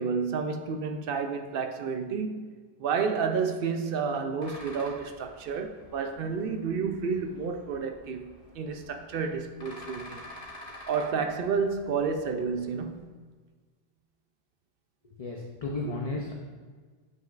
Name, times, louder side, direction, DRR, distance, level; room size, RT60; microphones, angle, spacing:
voice 1, 0.0-2.5 2.8-10.3 10.6-13.1, right 5 dB, 65° right, 0.7 m, -30 dB
sound 1, 4.4-13.0, left 1 dB, 65° left, 1.8 m, -49 dB
voice 2, 15.2-16.4, left 2 dB, 40° left, 0.6 m, -33 dB
7.6 x 6.1 x 2.5 m
omnidirectional pair, 1.0 m